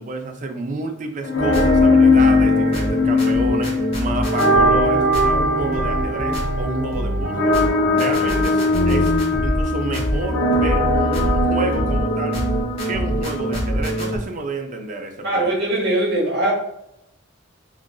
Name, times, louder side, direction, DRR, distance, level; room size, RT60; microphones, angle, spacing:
voice 1, 0.0-7.6 7.9-9.1 9.4-12.4 12.9-15.5, right 2 dB, 40° right, 4 dB, 0.4 m, -29 dB
sound 1, 1.2-14.2, left 2 dB, 85° left, 0.5 m, -20 dB
sound 2, 1.4-14.2, equal, 30° left, 0.8 m, -25 dB
voice 2, 15.2-16.5, right 1 dB, 60° right, -1 dB, 1.0 m, -21 dB
3.7 x 2.4 x 2.3 m, 0.81 s
head